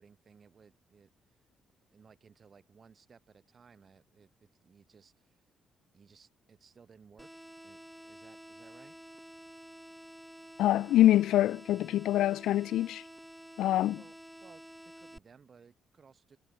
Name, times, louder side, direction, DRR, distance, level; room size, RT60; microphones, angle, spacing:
voice 1, 0.0-1.5 1.9-5.4 5.9-9.0 14.0-14.6 15.0-16.4, right 6 dB, 45° right, 7.2 m, -60 dB
sound 1, 7.2-15.2, equal, 5° right, 0.8 m, -50 dB
voice 2, 10.6-13.0 13.6-14.0, left 13 dB, 80° left, 0.3 m, -25 dB
cardioid pair, 90°, 0 cm